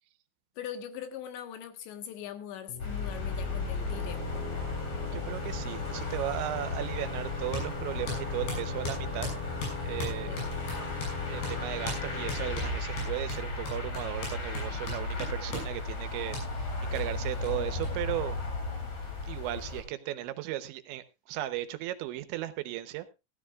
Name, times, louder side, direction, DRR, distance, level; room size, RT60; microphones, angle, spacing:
voice 1, 0.6-4.5 10.3-10.4, left 9 dB, 80° left, 3.6 m, -41 dB
sound 1, 2.7-14.2, left 3 dB, 15° left, 2.8 m, -40 dB
sound 2, 2.8-19.8, left 3 dB, 40° left, 4.0 m, -35 dB
voice 2, 5.1-9.3 9.9-10.4 11.3-18.4 19.2-23.1, right 14 dB, 85° right, 3.2 m, -36 dB
sound 3, 7.5-7.7 8.1-11.2 11.4-11.6 11.9-12.0 12.3-15.7 16.3-16.5 17.0-17.1 17.4-17.5 17.8-17.9 18.1-18.9, left 3 dB, 65° left, 8.3 m, -38 dB
17.5 x 13.0 x 2.4 m
omnidirectional pair, 5.1 m